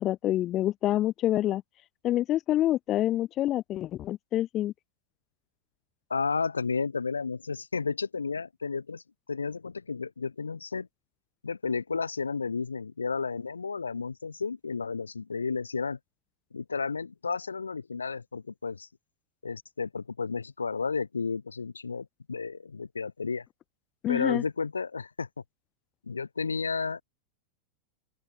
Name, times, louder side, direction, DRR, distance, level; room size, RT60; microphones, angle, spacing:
voice 1, 0.0-1.6 2.0-4.7 24.0-24.4, left 13 dB, 35° left, 0.3 m, -27 dB
voice 2, 6.1-9.0 9.3-10.9 11.4-16.0 16.5-18.9 19.4-23.4 24.1-25.3 26.1-27.0, left 5 dB, 75° left, 0.7 m, -32 dB
open air
figure-of-eight pair, 90°, 0 cm